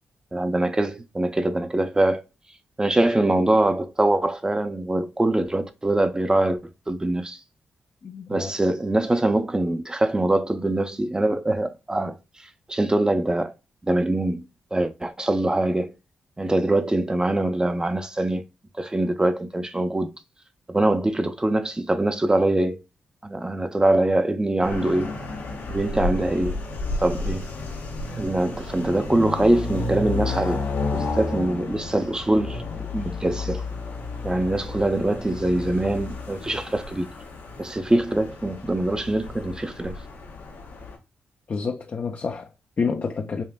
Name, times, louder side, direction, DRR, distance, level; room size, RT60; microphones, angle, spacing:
voice 1, 0.3-2.2 2.8-6.6 6.9-7.4 8.3-12.2 12.7-13.5 13.9-14.4 14.7-15.9 16.4-18.4 18.8-20.1 20.7-22.8 23.2-25.1 25.7-26.6 27.0-27.4 28.2-30.6 30.9-32.6 32.9-33.6 34.2-37.1 37.6-39.9, right 1 dB, 20° right, 0.5 m, -23 dB
voice 2, 8.0-8.5 41.5-43.4, left 5 dB, 50° left, 0.5 m, -29 dB
sound 1, 24.6-40.9, left 3 dB, 85° left, 1.1 m, -32 dB
5.2 x 2.5 x 2.2 m
cardioid pair, 55°, 4 cm